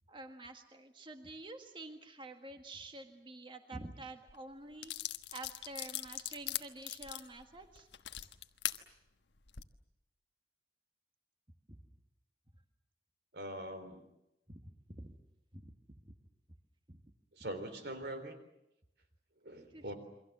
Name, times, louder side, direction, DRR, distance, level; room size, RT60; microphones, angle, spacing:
voice 1, 0.1-4.9 5.3-7.9 11.7-11.8 14.5-15.1 15.5-15.8 16.9-17.0 19.7-19.9, right 2 dB, 30° right, 6 dB, 1.7 m, -49 dB
sound 1, 4.3-4.4 4.8-8.8 9.4-9.6, left 13 dB, 90° left, 1.3 m, -40 dB
voice 2, 13.3-14.0 17.3-18.4 19.4-19.9, right 1 dB, 65° right, 9 dB, 3.8 m, -42 dB
28.5 x 24.5 x 7.5 m, 0.87 s
head